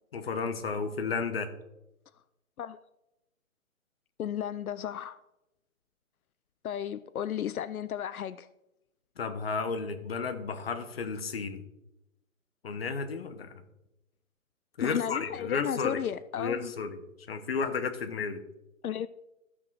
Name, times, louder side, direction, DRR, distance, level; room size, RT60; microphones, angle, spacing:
voice 1, 0.1-1.5 9.2-11.6 12.6-13.6 14.8-16.0 16.4-17.0 17.3-18.4, left 5 dB, 45° left, 1.1 m, -33 dB
voice 2, 4.2-5.2 6.6-8.5 14.8-16.7 18.8-19.1, left 9 dB, 85° left, 0.6 m, -34 dB
13.0 x 6.1 x 4.7 m
hypercardioid pair, 165°, 42 cm